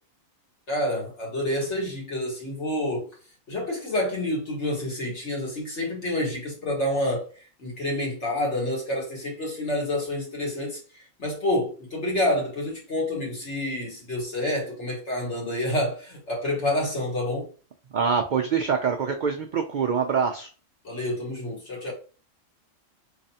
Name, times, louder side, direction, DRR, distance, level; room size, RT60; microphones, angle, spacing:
voice 1, 0.7-3.1 3.5-7.3 7.6-10.8 11.2-17.5 20.8-21.9, left 1 dB, 60° left, 1.9 m, -28 dB
voice 2, 17.9-20.5, right 6 dB, 80° right, 0.4 m, -25 dB
4.0 x 3.2 x 2.8 m
omnidirectional pair, 1.4 m